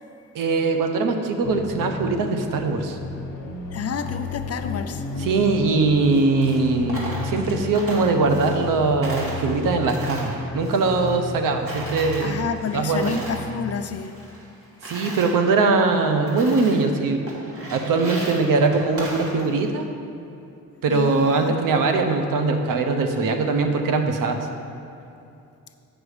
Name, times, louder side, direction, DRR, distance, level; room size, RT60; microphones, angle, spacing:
voice 1, 0.3-3.0 5.2-12.4 12.7-13.2 14.8-17.2 17.7-19.8 20.8-24.4, right 3 dB, 85° right, 5 dB, 0.8 m, -21 dB
sound 1, 1.4-13.9, left 4 dB, 70° left, 1.0 m, -33 dB
voice 2, 3.7-5.0 12.2-14.1 20.9-21.6, left 6 dB, 50° left, 8 dB, 0.6 m, -29 dB
Coin (dropping), 5.9-8.8 9.0-11.4 11.7-13.5 13.8-15.3 15.9-16.0 16.3-16.9 17.3-19.7, right 1 dB, 45° right, 2.1 m, -37 dB
8.1 x 6.1 x 4.9 m, 2.6 s
cardioid pair, 90°, 32 cm